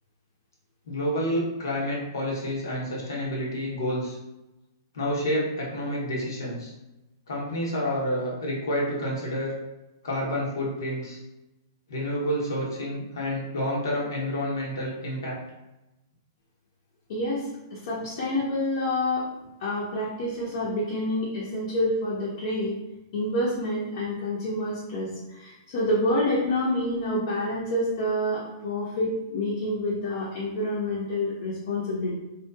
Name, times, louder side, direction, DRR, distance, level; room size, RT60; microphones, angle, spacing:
voice 1, 0.9-4.2 4.9-6.7 7.3-9.5 10.0-11.2 11.9-15.4, equal, 85° left, -3 dB, 0.9 m, -29 dB
voice 2, 17.1-17.4 17.7-19.3 19.6-22.7 23.1-32.1, left 1 dB, 55° left, -7 dB, 0.7 m, -28 dB
2.8 x 2.3 x 2.3 m, 0.97 s
hypercardioid pair, 145°, 2 cm